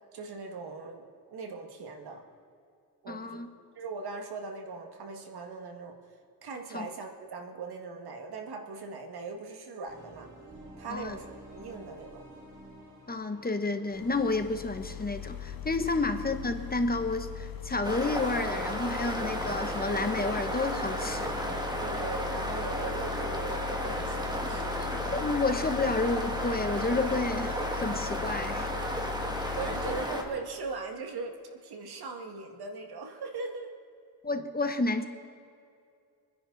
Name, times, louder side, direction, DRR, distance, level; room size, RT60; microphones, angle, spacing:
voice 1, 0.1-2.2 3.0-3.4 3.8-6.0 6.4-10.3 10.8-11.3 11.5-12.2 15.9-16.0 21.8-24.9 29.6-31.3 31.6-33.7, right 4 dB, 80° right, 3 dB, 1.9 m, -40 dB
voice 2, 3.1-3.5 6.7-6.9 10.9-11.2 13.1-21.4 24.8-28.7 34.2-35.1, left 3 dB, 25° left, 7 dB, 1.0 m, -30 dB
sound 1, 9.9-16.7, right 1 dB, 50° right, 4.7 m, -52 dB
sound 2, 13.9-30.0, left 10 dB, 65° left, 1.1 m, -40 dB
sound 3, 17.8-30.2, equal, 10° right, 1.9 m, -33 dB
26.0 x 10.5 x 4.0 m, 2.4 s
cardioid pair, 95°, 38 cm